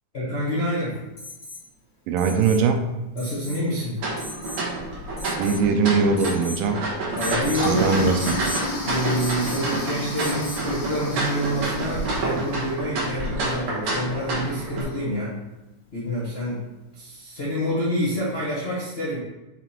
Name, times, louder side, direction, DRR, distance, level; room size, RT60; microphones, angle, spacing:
voice 1, 0.1-1.0 3.1-4.0 7.2-8.0 8.8-15.3 15.9-16.6 16.9-19.2, equal, 80° left, -8 dB, 0.5 m, -27 dB
Alarm, 1.2-1.6 2.2-2.6 3.2-3.6 4.2-4.6 5.2-5.7 6.2-6.6 7.2-7.6 8.2-8.6 9.2-9.7 10.2-10.7 12.4-12.5, left 1 dB, 25° left, 2.3 m, -37 dB
voice 2, 2.1-2.8 5.4-6.8 7.6-8.4, right 4 dB, 85° right, 6 dB, 2.4 m, -21 dB
sound 1, 4.0-14.8, right 2 dB, 55° right, 1.8 m, -29 dB
Toilet flush, 7.6-12.8, left 1 dB, 55° left, 1.4 m, -32 dB
5.9 x 4.1 x 4.4 m, 1.0 s
omnidirectional pair, 4.0 m